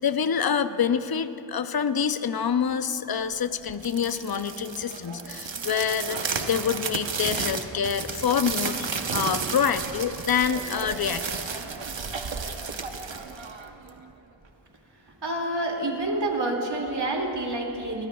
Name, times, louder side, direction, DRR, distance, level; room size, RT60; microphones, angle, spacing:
voice 1, 0.0-11.5, left 7 dB, 55° left, 11 dB, 0.6 m, -26 dB
sound 1, 3.7-14.0, right 5 dB, 85° right, 1.0 m, -32 dB
voice 2, 15.2-18.1, right 2 dB, 65° right, 0 dB, 2.4 m, -28 dB
24.5 x 20.0 x 2.3 m, 2.8 s
wide cardioid pair, 50°, 44 cm